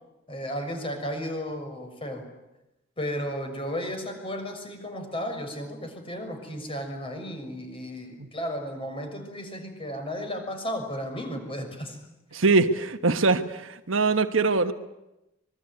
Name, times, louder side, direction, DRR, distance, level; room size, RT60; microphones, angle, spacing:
voice 1, 0.3-2.3 3.0-12.0 12.3-12.4, equal, 30° left, 5 dB, 6.3 m, -34 dB
voice 2, 12.3-14.7, right 3 dB, 85° right, 8 dB, 1.4 m, -23 dB
25.0 x 22.5 x 9.6 m, 0.93 s
head